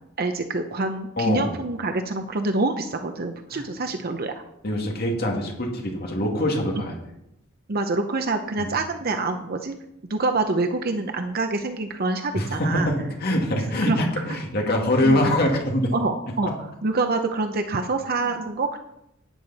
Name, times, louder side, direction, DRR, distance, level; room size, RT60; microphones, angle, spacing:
voice 1, 0.2-4.4 7.7-9.7 10.1-12.9 13.9-14.0 15.0-15.2 15.9-16.5 16.8-18.8, right 3 dB, 50° right, 6 dB, 0.8 m, -26 dB
voice 2, 1.2-1.5 3.5-3.7 4.6-7.0 12.3-15.9 16.5-16.6 18.2-18.3, left 1 dB, 50° left, 1 dB, 2.2 m, -24 dB
12.0 x 9.7 x 4.1 m, 0.81 s
head